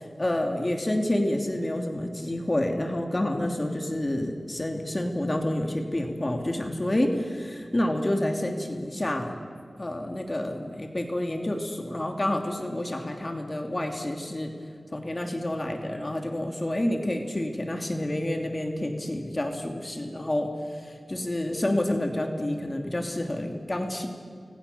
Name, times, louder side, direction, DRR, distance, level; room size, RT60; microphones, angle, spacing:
voice 1, 0.2-9.3 9.8-14.5 14.9-24.1, left 1 dB, 30° left, 3 dB, 2.9 m, -29 dB
29.5 x 21.5 x 7.0 m, 2.1 s
wide cardioid pair, 55°, 0 cm